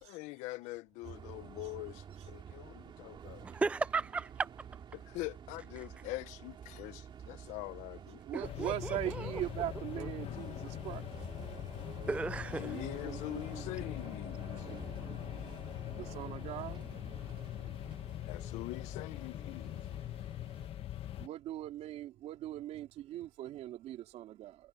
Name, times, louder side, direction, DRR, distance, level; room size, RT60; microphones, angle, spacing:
voice 1, 0.0-3.4 5.1-8.2 12.6-14.5 18.3-19.8, left 20 dB, 85° left, 0.9 m, -43 dB
sound 1, 1.0-20.7, right 8 dB, 40° right, 2.3 m, -50 dB
voice 2, 3.4-4.5 8.3-9.4 10.0-10.1 12.1-12.8, right 3 dB, 10° right, 0.4 m, -35 dB
voice 3, 8.2-11.0 16.0-16.8 21.2-24.6, right 13 dB, 65° right, 2.9 m, -40 dB
sound 2, 8.4-21.3, left 12 dB, 55° left, 1.7 m, -42 dB
cardioid pair, 110°, 12 cm